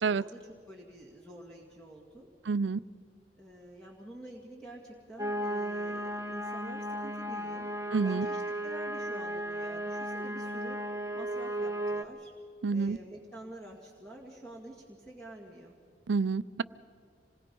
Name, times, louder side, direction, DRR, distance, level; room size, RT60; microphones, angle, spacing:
voice 1, 0.1-2.3 3.4-7.7 8.0-10.8 11.1-12.3 12.7-15.8, right 1 dB, 5° left, -3 dB, 2.1 m, -48 dB
voice 2, 2.5-2.8 7.9-8.3 12.6-13.0 16.1-16.6, right 4 dB, 90° right, 17 dB, 0.5 m, -28 dB
sound 1, 5.2-12.0, right 1 dB, 20° right, 1.1 m, -35 dB
26.5 x 20.5 x 5.4 m, 2.3 s
head